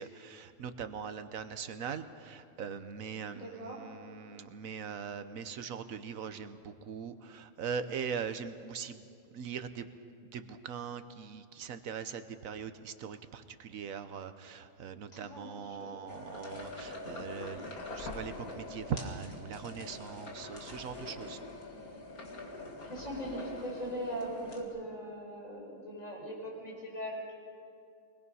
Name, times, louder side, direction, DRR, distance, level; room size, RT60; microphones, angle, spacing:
voice 1, 0.0-9.0 9.3-9.9 10.3-21.4, right 7 dB, 70° right, 10 dB, 1.2 m, -41 dB
voice 2, 3.3-3.9 15.1-15.9 22.9-27.3, right 1 dB, 65° left, -3 dB, 5.8 m, -40 dB
sound 1, 16.1-24.6, left 2 dB, 80° left, 2.6 m, -44 dB
24.5 x 20.0 x 5.5 m, 2.4 s
omnidirectional pair, 1.5 m